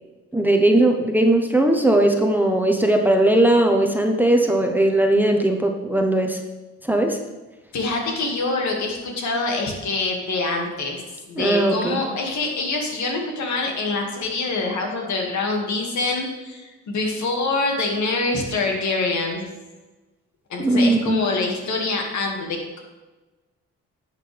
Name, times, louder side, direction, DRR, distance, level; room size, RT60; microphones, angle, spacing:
voice 1, 0.3-6.4 6.8-7.2 11.4-12.0 20.6-21.2, right 1 dB, 5° right, 2 dB, 1.0 m, -18 dB
voice 2, 7.7-11.0 11.3-19.4 20.5-22.8, left 3 dB, 70° left, 1 dB, 2.2 m, -25 dB
11.5 x 7.7 x 3.5 m, 1.2 s
cardioid pair, 90°, 30 cm